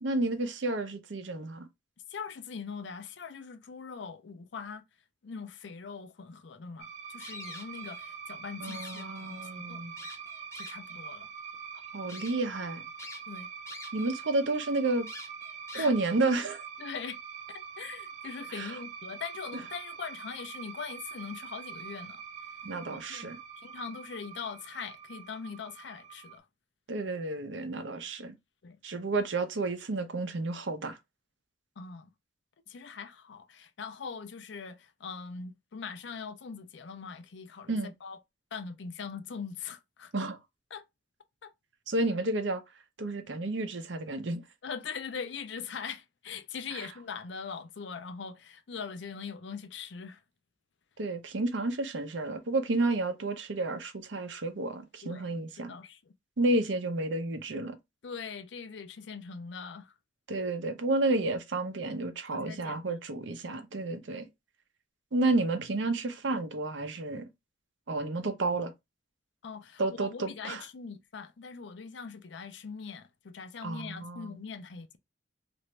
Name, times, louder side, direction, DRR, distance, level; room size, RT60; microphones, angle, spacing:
voice 1, 0.0-1.7 8.6-9.9 11.9-12.8 13.9-15.1 15.7-16.6 18.5-18.7 22.6-23.4 26.9-28.4 28.8-31.0 37.7-37.9 40.1-40.4 41.9-42.6 43.0-44.4 46.7-46.9 51.0-55.7 56.4-57.8 60.3-64.3 65.1-67.3 67.9-68.7 69.8-70.6 73.6-74.3, right 2 dB, 75° right, 0.6 m, -31 dB
voice 2, 2.1-4.8 5.2-9.8 10.6-11.3 13.3-13.5 15.7-15.9 16.8-17.2 17.5-22.2 22.9-23.3 23.6-26.5 28.6-28.8 31.8-32.1 32.7-38.2 38.5-40.1 40.7-40.8 41.4-41.5 44.6-50.2 55.0-55.3 55.6-56.0 58.0-59.9 62.0-63.0 69.4-75.0, left 5 dB, 70° left, 0.5 m, -42 dB
sound 1, 6.8-26.4, right 7 dB, 40° right, 0.4 m, -44 dB
sound 2, 7.2-8.1 8.5-9.5 10.0-11.0 11.5-11.6 12.1-12.3 13.0-14.2 14.5-14.6 15.1-16.2, left 2 dB, 15° left, 0.8 m, -47 dB
3.0 x 2.6 x 3.2 m
head